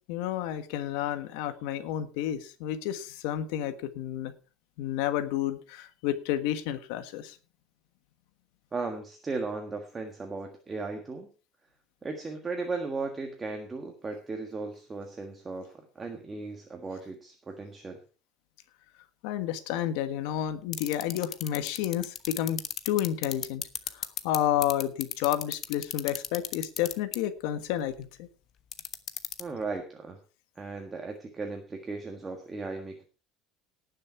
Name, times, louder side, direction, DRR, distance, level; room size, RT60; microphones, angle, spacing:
voice 1, 0.1-4.3 4.8-7.3 19.2-22.6 22.8-23.6 23.9-28.3, left 11 dB, 80° left, 10 dB, 1.5 m, -30 dB
voice 2, 8.7-11.3 12.0-18.0 29.4-30.2 30.5-33.0, right 3 dB, 15° right, 3 dB, 1.6 m, -36 dB
sound 1, 20.7-24.4 24.6-27.1 28.7-29.4, left 11 dB, 35° left, 1.0 m, -31 dB
18.5 x 6.6 x 4.6 m, 0.35 s
cardioid pair, 165°, 0 cm